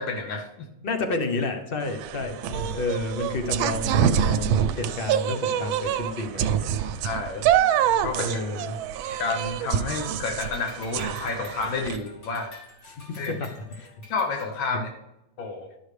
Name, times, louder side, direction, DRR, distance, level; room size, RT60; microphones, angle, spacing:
voice 1, 0.0-0.7 7.0-7.4 8.0-8.3 9.2-12.5 13.2-13.3 14.1-14.9 15.4-15.7, left 4 dB, 80° left, 4 dB, 1.7 m, -30 dB
voice 2, 0.8-6.7 8.2-8.8 12.9-14.0, left 3 dB, 55° left, 5 dB, 0.6 m, -31 dB
sound 1, 1.8-12.0, right 9 dB, 90° right, 1.4 m, -26 dB
sound 2, 9.1-10.0 10.4-14.5, left 1 dB, 35° left, 2.5 m, -48 dB
11.5 x 6.4 x 3.2 m, 0.87 s
omnidirectional pair, 2.1 m